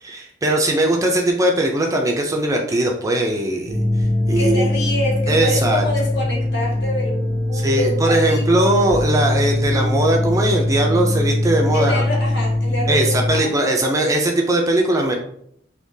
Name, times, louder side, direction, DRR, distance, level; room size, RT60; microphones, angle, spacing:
voice 1, 0.0-3.7 4.3-4.7 5.3-5.8 7.5-12.0 12.9-15.1, right 1 dB, 15° right, 1 dB, 0.4 m, -19 dB
sound 1, 3.7-13.4, left 1 dB, 30° left, 0.9 m, -21 dB
voice 2, 4.4-8.7 11.7-13.5, left 1 dB, 60° left, -2 dB, 1.1 m, -26 dB
3.7 x 2.8 x 2.6 m, 0.67 s
head